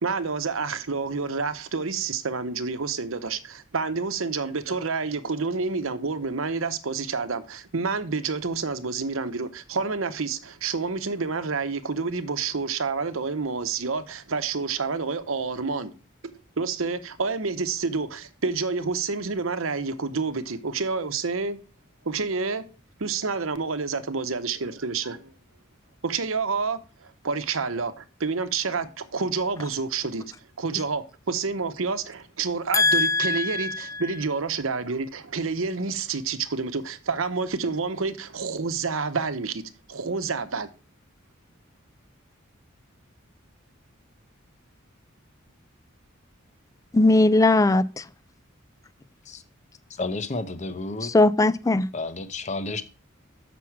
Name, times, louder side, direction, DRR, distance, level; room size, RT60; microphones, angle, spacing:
voice 1, 0.0-15.9 16.6-21.6 22.0-22.6 23.0-25.3 26.0-30.2 30.6-39.6 39.9-40.7, right 4 dB, 75° right, 0.9 m, -28 dB
voice 2, 32.7-34.0 46.9-48.1 51.0-51.9, left 2 dB, 15° left, 0.3 m, -20 dB
voice 3, 50.0-51.1 51.9-52.8, left 3 dB, 35° left, 0.8 m, -31 dB
7.3 x 6.0 x 4.7 m
head